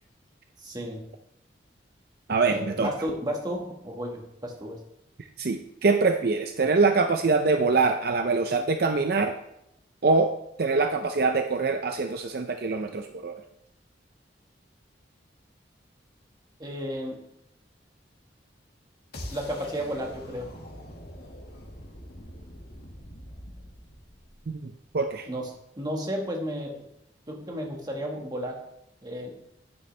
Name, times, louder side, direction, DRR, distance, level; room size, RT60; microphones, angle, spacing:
voice 1, 0.6-1.0 2.5-4.8 16.6-17.2 19.3-20.5 25.3-25.5 25.8-26.9 27.3-28.6 29.0-29.3, equal, 20° right, 1 dB, 1.6 m, -33 dB
voice 2, 2.3-2.9 5.4-9.4 10.0-10.3 10.6-13.4 24.5-25.3, right 4 dB, 55° right, 6 dB, 0.6 m, -24 dB
sound 1, 19.1-25.1, equal, 55° left, 1.8 m, -44 dB
10.5 x 9.2 x 3.3 m, 0.81 s
head